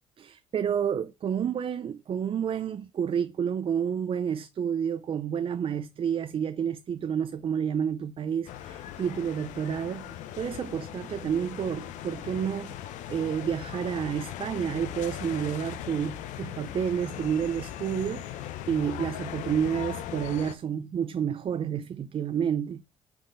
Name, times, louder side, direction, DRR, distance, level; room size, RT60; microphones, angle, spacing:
voice 1, 0.2-10.1 10.4-12.8 13.1-22.8, right 8 dB, 45° right, 0.5 m, -30 dB
sound 1, 8.5-20.5, left 11 dB, 80° left, 0.6 m, -39 dB
5.9 x 3.7 x 5.0 m
supercardioid pair, 75°, 12 cm